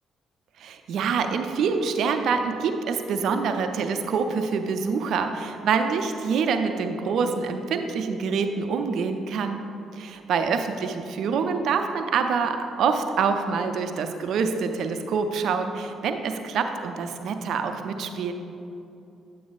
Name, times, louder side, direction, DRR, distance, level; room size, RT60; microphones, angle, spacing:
voice 1, 0.6-9.6 9.9-18.3, right 5 dB, 60° right, 7 dB, 0.4 m, -26 dB
9.1 x 8.5 x 2.4 m, 2.8 s
hypercardioid pair, 45°, 0 cm